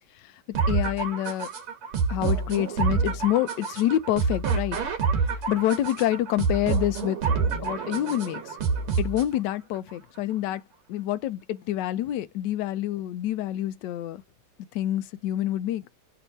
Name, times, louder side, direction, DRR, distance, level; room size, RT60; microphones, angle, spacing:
voice 1, 0.1-1.5 2.1-4.8 5.5-7.2 7.6-8.6 9.0-14.2 14.7-15.9, left 13 dB, 75° left, 1.0 m, -27 dB
sound 1, 0.5-9.5, right 5 dB, 90° right, 2.1 m, -27 dB
4.3 x 2.7 x 2.7 m
omnidirectional pair, 2.4 m